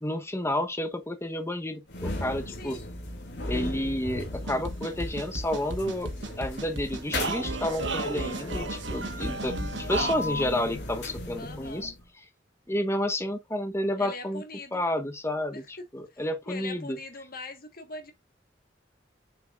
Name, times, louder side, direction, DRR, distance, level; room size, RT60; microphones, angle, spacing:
voice 1, 0.0-2.8 3.5-6.1 6.4-11.9 12.7-14.4 14.7-17.0, left 1 dB, 15° left, 0.9 m, -30 dB
sound 1, 1.9-12.1, left 2 dB, 75° left, 2.5 m, -37 dB
voice 2, 2.5-2.8 11.4-11.9 13.9-14.8 15.5-18.1, left 3 dB, 55° left, 1.5 m, -42 dB
sound 2, 4.3-10.2, right 2 dB, 85° right, 1.3 m, -34 dB
6.9 x 5.7 x 2.4 m
head